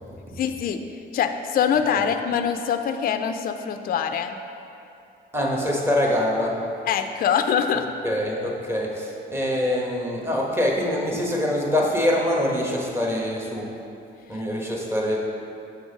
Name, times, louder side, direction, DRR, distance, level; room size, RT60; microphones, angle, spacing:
voice 1, 0.4-0.8 1.1-4.4 6.9-7.9 14.3-14.4, left 7 dB, 50° left, 8 dB, 0.4 m, -24 dB
voice 2, 5.3-6.6 8.0-13.7 14.3-15.2, left 1 dB, 10° right, -2 dB, 1.2 m, -24 dB
6.6 x 3.9 x 5.0 m, 2.7 s
cardioid pair, 90°, 20 cm